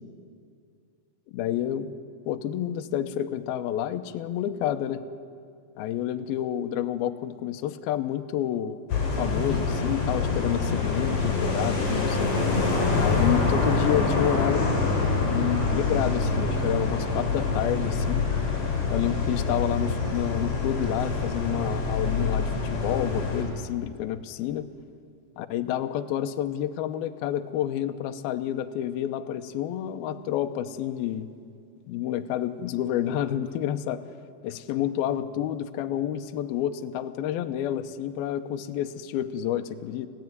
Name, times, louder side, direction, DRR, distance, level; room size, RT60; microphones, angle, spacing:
voice 1, 1.3-2.0 2.3-5.0 5.8-8.8 9.2-12.3 13.0-14.7 15.2-18.3 18.9-24.7 25.4-31.3 31.9-34.0 34.4-40.1, left 11 dB, 80° left, 7 dB, 2.2 m, -29 dB
sound 1, 8.9-23.4, left 3 dB, 40° left, 5.5 m, -25 dB
27.5 x 15.5 x 9.4 m, 2.3 s
omnidirectional pair, 5.2 m